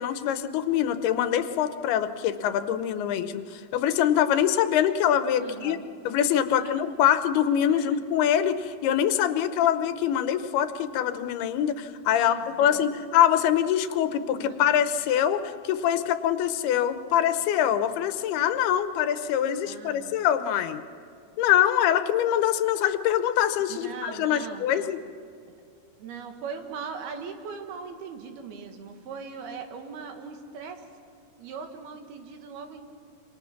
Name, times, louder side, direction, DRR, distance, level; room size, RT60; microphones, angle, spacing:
voice 1, 0.0-5.8 6.0-20.8 21.4-25.0, left 10 dB, 85° left, 10 dB, 2.9 m, -24 dB
voice 2, 5.4-5.8 6.4-6.8 7.7-8.0 12.2-12.8 14.3-14.6 19.7-20.2 23.7-24.9 26.0-30.9 31.4-32.8, right 5 dB, 80° right, 5 dB, 3.7 m, -40 dB
27.0 x 26.0 x 5.9 m, 2.2 s
omnidirectional pair, 4.4 m